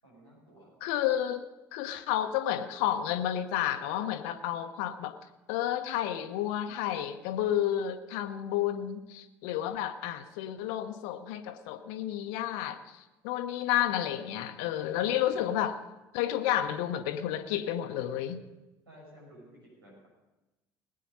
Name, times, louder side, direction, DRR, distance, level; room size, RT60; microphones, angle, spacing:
voice 1, 0.0-0.7 18.9-20.1, equal, 85° right, -3 dB, 6.1 m, -54 dB
voice 2, 0.8-1.5 1.7-5.1 5.5-15.8 16.1-18.4, left 11 dB, 65° left, 8 dB, 0.8 m, -31 dB
20.0 x 8.6 x 5.5 m, 1.0 s
figure-of-eight pair, 55°, 12 cm